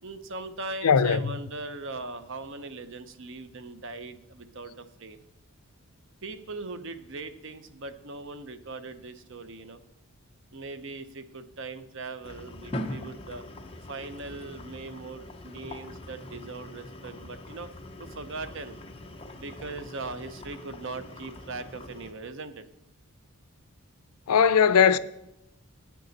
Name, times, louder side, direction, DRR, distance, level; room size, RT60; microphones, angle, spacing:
voice 1, 0.0-5.2 6.2-9.8 10.5-13.4 13.9-17.7 18.0-18.8 19.3-22.6, right 3 dB, 55° right, 0.7 m, -40 dB
voice 2, 0.8-1.3 24.3-25.0, left 7 dB, 80° left, 0.5 m, -19 dB
sound 1, 12.2-22.1, left 1 dB, 25° left, 0.7 m, -42 dB
9.2 x 9.0 x 4.1 m
head